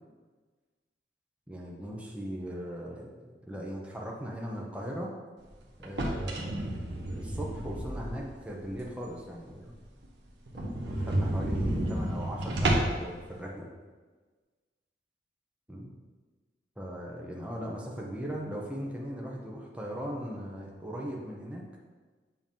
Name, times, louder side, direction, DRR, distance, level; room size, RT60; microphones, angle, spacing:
voice 1, 1.5-5.1 5.8-9.7 10.5-13.7 15.7-15.9 16.8-21.6, equal, 5° right, -2 dB, 0.8 m, -39 dB
sound 1, 5.8-8.4 8.8-8.9 9.3-9.4 9.7-9.8 10.0-10.1 10.5-13.1, right 1 dB, 75° right, 1.1 m, -31 dB
7.4 x 3.0 x 5.4 m, 1.4 s
head